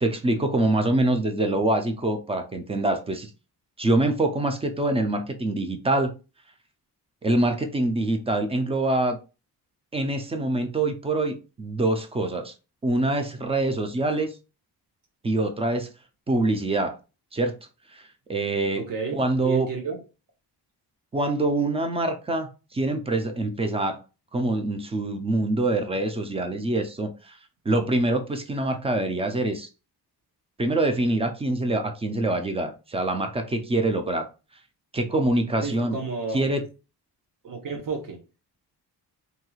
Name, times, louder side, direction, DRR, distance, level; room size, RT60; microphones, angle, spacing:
voice 1, 0.0-3.3 3.8-6.1 7.2-9.2 9.9-12.5 12.8-14.3 15.2-15.9 16.3-17.0 17.3-17.5 17.9-18.8 19.1-19.7 21.1-24.0 24.3-27.4 27.7-29.7 30.6-34.3 34.9-36.0 36.3-36.6, right 2 dB, 15° right, 0.3 m, -25 dB
voice 2, 18.7-20.0 35.6-36.5 37.4-38.2, right 4 dB, 50° right, 1.0 m, -32 dB
3.0 x 2.8 x 2.3 m
wide cardioid pair, 145°, 41 cm